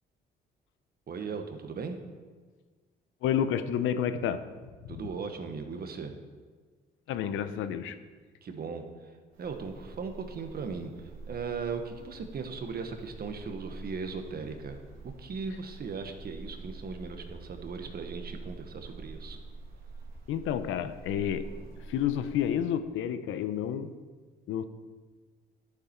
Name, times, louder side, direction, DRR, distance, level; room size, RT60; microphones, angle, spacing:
voice 1, 1.1-2.0 4.9-6.1 8.4-8.8 9.4-14.8 15.2-19.4, right 5 dB, 50° right, 6 dB, 1.3 m, -38 dB
voice 2, 3.2-4.4 4.8-4.9 7.1-7.9 20.3-21.5 21.9-23.9 24.5-24.6, left 9 dB, 85° left, 11 dB, 0.7 m, -30 dB
sound 1, 9.3-22.5, right 3 dB, 85° right, 1.9 m, -46 dB
11.5 x 7.2 x 4.5 m, 1.4 s
cardioid pair, 90°, 20 cm